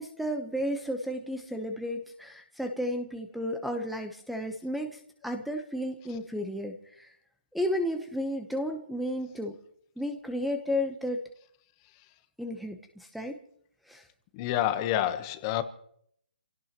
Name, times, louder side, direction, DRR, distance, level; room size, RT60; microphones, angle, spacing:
voice 1, 0.0-7.1 7.5-9.6 10.0-11.2 12.4-13.4 13.9-14.0, equal, ahead, 6 dB, 1.0 m, -33 dB
voice 2, 14.3-15.6, left 12 dB, 25° left, 10 dB, 1.1 m, -28 dB
28.0 x 17.0 x 3.0 m, 0.67 s
hypercardioid pair, 160°, 6 cm